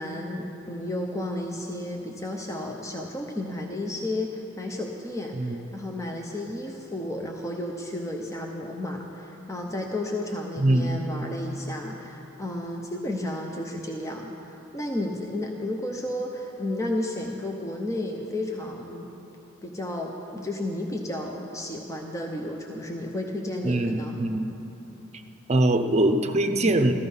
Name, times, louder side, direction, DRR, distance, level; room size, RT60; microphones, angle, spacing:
voice 1, 0.0-19.1 19.6-24.2, left 1 dB, 15° left, 1 dB, 0.8 m, -32 dB
voice 2, 10.6-11.1 23.6-24.5 25.5-26.9, right 1 dB, 35° right, 6 dB, 0.7 m, -23 dB
14.5 x 13.5 x 5.5 m, 2.9 s
head